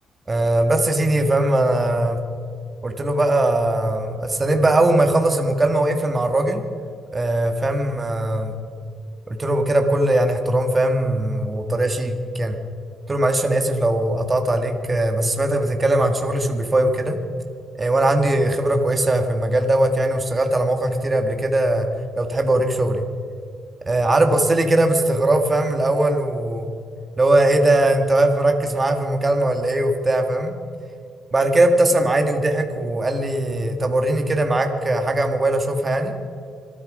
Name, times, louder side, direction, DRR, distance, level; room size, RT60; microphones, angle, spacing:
voice 1, 0.3-2.2 2.8-6.6 7.1-8.6 9.3-12.6 13.1-17.2 17.8-21.9 22.2-23.0 23.9-26.7 27.2-30.6 31.3-36.1, right 1 dB, 25° right, 5 dB, 1.9 m, -20 dB
26.0 x 9.7 x 5.0 m, 2.3 s
cardioid pair, 90°, 0 cm